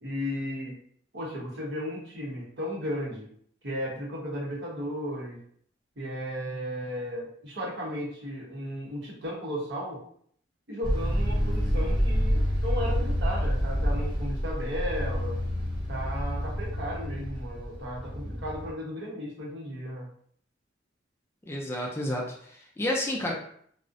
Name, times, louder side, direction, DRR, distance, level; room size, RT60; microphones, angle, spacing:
voice 1, 0.0-0.7 1.1-3.3 3.6-5.4 6.0-10.0 10.7-15.4 15.9-20.1, equal, 65° right, -3 dB, 0.8 m, -35 dB
sound 1, 10.8-18.7, equal, 25° right, 0.8 m, -28 dB
voice 2, 21.4-23.3, left 1 dB, 15° left, -1 dB, 0.3 m, -31 dB
2.4 x 2.0 x 2.5 m, 0.62 s
head